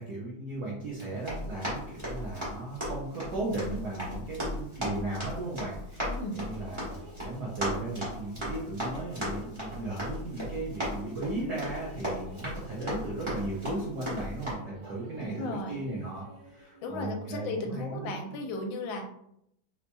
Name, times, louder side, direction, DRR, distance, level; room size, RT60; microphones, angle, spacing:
voice 1, 0.0-18.2, right 2 dB, 65° right, -5 dB, 1.1 m, -36 dB
Run, 0.9-14.5, equal, 15° right, 1.1 m, -37 dB
voice 2, 6.1-6.4 15.2-15.8 16.8-19.1, left 2 dB, 75° left, 3 dB, 1.4 m, -35 dB
sound 1, 6.4-17.0, equal, 85° right, 1.8 m, -53 dB
4.3 x 2.7 x 2.2 m, 0.74 s
omnidirectional pair, 2.2 m